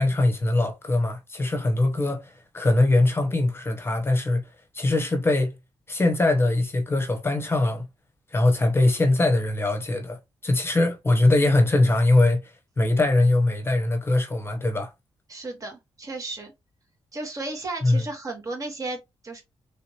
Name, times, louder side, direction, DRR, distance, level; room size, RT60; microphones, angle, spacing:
voice 1, 0.0-4.4 4.7-5.5 5.9-7.8 8.3-12.4 12.8-14.9 17.8-18.0, left 2 dB, 25° left, 1.0 m, -22 dB
voice 2, 15.3-16.5 17.1-19.4, right 2 dB, 35° right, 1.6 m, -34 dB
3.4 x 2.8 x 2.9 m
cardioid pair, 90°, 10 cm